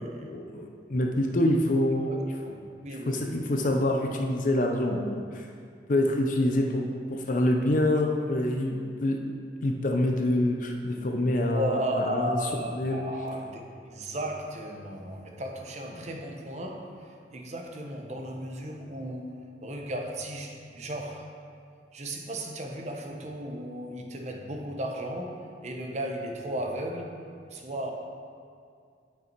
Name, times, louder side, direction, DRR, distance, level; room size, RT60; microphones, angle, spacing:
voice 1, 0.0-2.1 3.1-5.4 5.9-9.3 9.6-12.4 12.7-13.0, left 1 dB, 45° left, 2 dB, 0.6 m, -26 dB
voice 2, 2.1-2.5 2.8-3.3 11.5-21.3 21.9-27.2 27.5-27.9, right 1 dB, 40° right, 2 dB, 0.9 m, -35 dB
9.0 x 5.8 x 4.5 m, 2.2 s
head